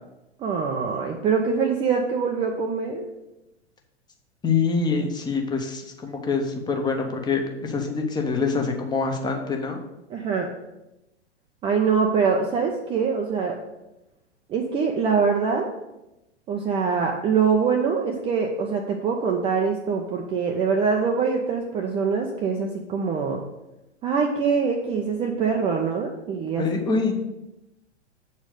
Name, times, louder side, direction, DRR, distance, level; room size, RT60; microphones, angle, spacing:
voice 1, 0.4-3.1 10.1-10.5 11.6-13.6 14.5-15.7 16.5-23.4 24.0-26.7 26.9-27.0, right 5 dB, 15° right, 1 dB, 0.6 m, -24 dB
voice 2, 4.4-9.8 26.6-27.2, left 4 dB, 10° left, 3 dB, 0.9 m, -25 dB
7.9 x 4.4 x 6.5 m, 0.93 s
figure-of-eight pair, 105°, 35 cm